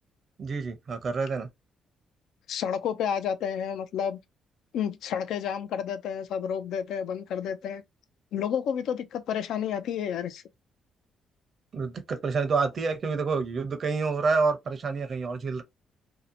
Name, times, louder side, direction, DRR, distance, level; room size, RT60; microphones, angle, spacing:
voice 1, 0.4-1.5 11.7-15.6, right 4 dB, 50° right, 0.6 m, -28 dB
voice 2, 2.5-4.2 4.7-7.8 8.3-10.4, left 8 dB, 80° left, 0.3 m, -30 dB
2.7 x 2.1 x 2.6 m
cardioid pair, 90°, 0 cm